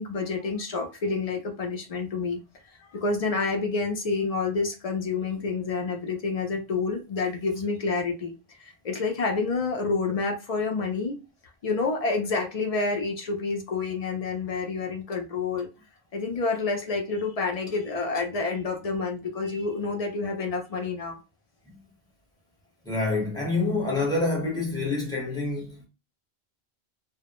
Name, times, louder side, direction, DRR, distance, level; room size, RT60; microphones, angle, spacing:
voice 1, 0.0-2.4 2.9-11.2 11.6-15.7 16.1-21.2, left 4 dB, 55° left, 0.4 m, -28 dB
voice 2, 22.8-25.9, left 3 dB, 5° left, 0.9 m, -27 dB
2.1 x 2.0 x 2.9 m
omnidirectional pair, 1.1 m